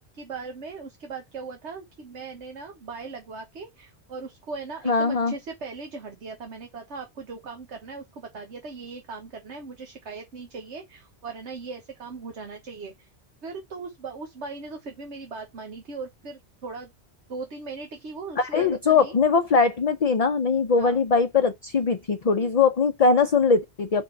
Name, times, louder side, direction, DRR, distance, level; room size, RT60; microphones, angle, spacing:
voice 1, 0.0-13.1 13.4-16.9 17.3-19.1 20.8-21.1, right 4 dB, 85° right, 1.5 m, -39 dB
voice 2, 4.9-5.3 18.4-24.0, left 5 dB, 40° left, 0.6 m, -21 dB
4.9 x 4.6 x 5.3 m
omnidirectional pair, 1.1 m